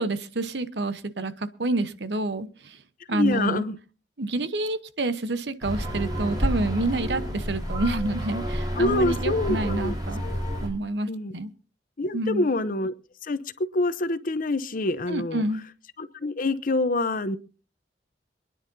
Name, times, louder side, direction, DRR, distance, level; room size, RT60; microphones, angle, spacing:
voice 1, 0.0-2.8 3.1-3.6 4.2-10.2 10.6-11.5 12.1-12.5 15.1-15.6, right 2 dB, 70° right, 12 dB, 1.0 m, -28 dB
voice 2, 3.1-3.7 8.8-9.9 11.1-11.3 12.0-12.9 13.2-13.4 13.7-15.4 16.0-17.4, left 2 dB, 50° left, 13 dB, 0.8 m, -26 dB
sound 1, 5.6-10.7, equal, 25° right, 4.4 m, -29 dB
26.5 x 10.0 x 2.7 m, 0.36 s
head